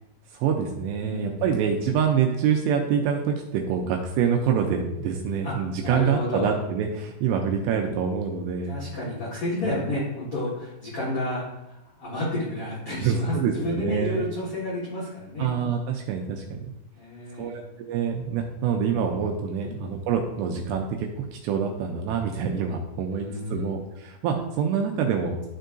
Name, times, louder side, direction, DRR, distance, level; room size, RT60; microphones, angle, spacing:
voice 1, 0.3-8.8 9.6-9.8 13.0-14.2 15.4-16.7 17.4-25.4, right 7 dB, 85° right, 2 dB, 2.5 m, -26 dB
voice 2, 1.0-1.4 5.4-5.5 5.8-6.6 8.7-15.5 16.9-17.6 19.6-20.0 23.1-23.8, left 1 dB, 60° left, -8 dB, 1.5 m, -31 dB
12.0 x 4.5 x 2.6 m, 0.92 s
omnidirectional pair, 5.3 m